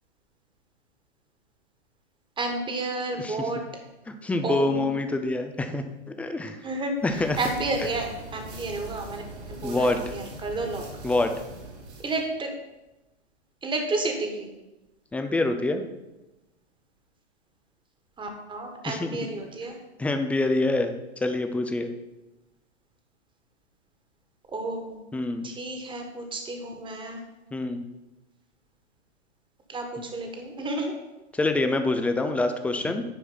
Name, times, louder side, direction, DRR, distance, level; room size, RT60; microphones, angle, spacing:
voice 1, 2.4-3.6 4.4-4.9 6.6-6.9 7.4-9.2 9.5-10.8 12.0-12.5 13.6-14.5 18.2-19.8 24.5-25.0 25.4-27.2 29.7-31.0, right 2 dB, 15° right, 4 dB, 1.5 m, -31 dB
voice 2, 3.2-3.5 4.1-6.6 7.0-7.4 9.6-10.1 11.0-11.3 15.1-15.8 18.9-19.2 20.0-20.9 21.2-21.9 25.1-25.5 27.5-27.8 31.3-33.0, left 2 dB, 5° left, 7 dB, 0.4 m, -26 dB
sound 1, 7.0-12.2, right 2 dB, 65° right, 3.1 m, -41 dB
10.0 x 4.6 x 5.6 m, 1.0 s
hypercardioid pair, 110°, 35 cm